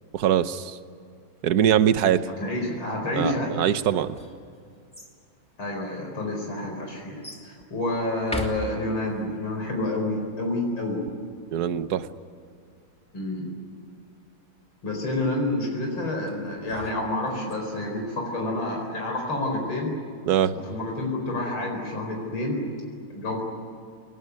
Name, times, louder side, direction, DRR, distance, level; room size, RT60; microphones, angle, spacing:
voice 1, 0.1-0.8 1.4-2.3 3.2-4.1 11.5-12.1 20.3-20.5, right 10 dB, 60° right, 12 dB, 1.3 m, -22 dB
voice 2, 2.4-3.5 5.6-11.0 13.1-13.5 14.8-19.9 20.6-22.6 23.1-23.4, left 2 dB, 80° left, 0 dB, 5.5 m, -29 dB
sound 1, 4.0-5.2 6.0-6.1 7.2-7.5 8.2-9.2 16.3-17.5, left 1 dB, 5° left, 2.6 m, -38 dB
24.5 x 21.0 x 9.6 m, 2.3 s
omnidirectional pair, 2.2 m